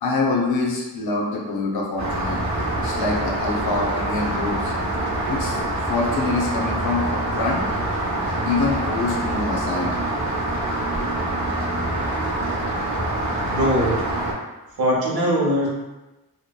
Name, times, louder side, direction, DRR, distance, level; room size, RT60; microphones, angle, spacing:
voice 1, 0.0-2.4 2.8-4.7 5.3-5.6 5.9-7.6 8.4-9.9, left 3 dB, 75° left, -2 dB, 0.6 m, -25 dB
Rain, 2.0-14.3, right 1 dB, 50° right, 0.7 m, -25 dB
voice 2, 13.4-14.0 14.8-15.7, equal, 75° right, -4 dB, 0.8 m, -21 dB
2.7 x 2.1 x 2.2 m, 1.1 s
wide cardioid pair, 105°, 37 cm